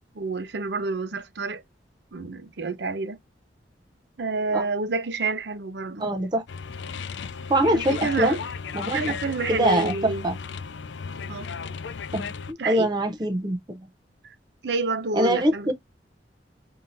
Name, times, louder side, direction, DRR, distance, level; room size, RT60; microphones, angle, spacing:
voice 1, 0.1-1.6 2.1-3.2 4.2-6.1 7.7-8.4 8.9-10.3 11.3-11.5 12.6-12.9 14.2-14.3 14.6-15.7, right 3 dB, 70° right, 0.7 m, -29 dB
voice 2, 6.0-6.4 7.5-8.4 8.7-9.1 9.5-10.3 12.1-13.8 15.1-15.7, right 1 dB, 25° right, 0.6 m, -24 dB
sound 1, 6.5-12.5, left 6 dB, 80° left, 0.4 m, -35 dB
5.4 x 2.8 x 2.6 m
head